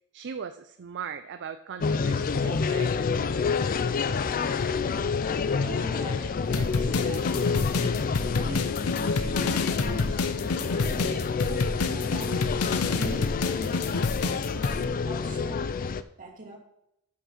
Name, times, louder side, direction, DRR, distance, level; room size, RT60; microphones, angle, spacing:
voice 1, 0.1-2.9, right 7 dB, 55° right, 0.4 m, -38 dB
sound 1, 1.8-16.0, left 5 dB, 40° left, 0.4 m, -28 dB
sound 2, 2.2-4.8 5.2-14.8, left 4 dB, 85° left, 0.7 m, -30 dB
voice 2, 5.5-12.6 12.9-15.8 16.2-16.6, right 1 dB, 40° right, 2.3 m, -43 dB
sound 3, 10.3-11.1, right 1 dB, 5° right, 3.1 m, -55 dB
10.0 x 5.7 x 6.1 m
head